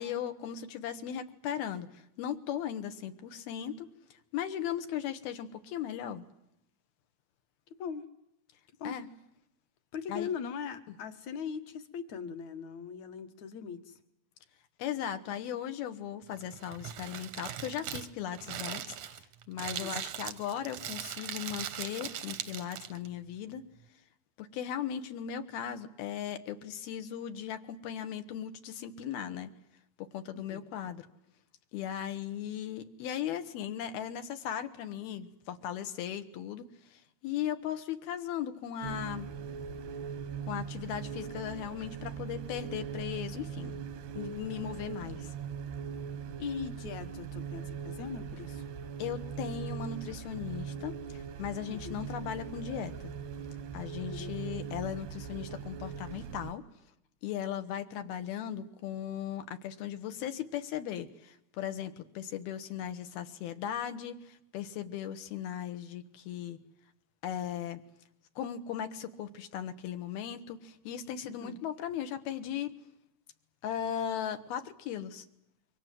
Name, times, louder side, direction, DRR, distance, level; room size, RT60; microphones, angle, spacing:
voice 1, 0.0-3.9 4.3-6.2 8.8-9.1 10.1-10.3 14.8-19.2 19.5-23.6 24.4-29.5 30.0-31.1 31.7-39.3 40.4-43.8 44.1-45.3 49.0-53.1 53.7-56.6 57.2-66.6 67.2-67.8 68.4-72.7 73.6-75.2, left 9 dB, 75° left, 8 dB, 3.2 m, -37 dB
voice 2, 9.9-14.0 19.8-20.0 30.3-30.7 46.4-48.6 51.7-52.0 54.1-54.3 71.2-71.6, left 6 dB, 55° left, 9 dB, 2.4 m, -40 dB
Crumpling crinkling, 16.3-23.1, right 10 dB, 65° right, 1.7 m, -40 dB
sound 1, 38.8-56.5, right 7 dB, 90° right, 3.5 m, -40 dB
27.0 x 24.0 x 7.6 m, 0.79 s
omnidirectional pair, 4.5 m